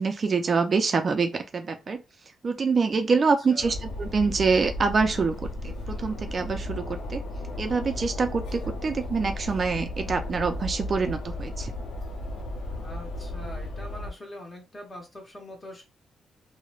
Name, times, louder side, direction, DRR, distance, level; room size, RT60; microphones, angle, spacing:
voice 1, 0.0-2.0 2.4-7.2 7.6-11.7, right 4 dB, 40° right, 0.3 m, -25 dB
sound 1, 3.6-14.1, left 1 dB, 85° left, 0.6 m, -35 dB
voice 2, 12.8-15.8, left 1 dB, 25° left, 1.0 m, -43 dB
3.0 x 2.0 x 2.4 m
cardioid pair, 100°, 0 cm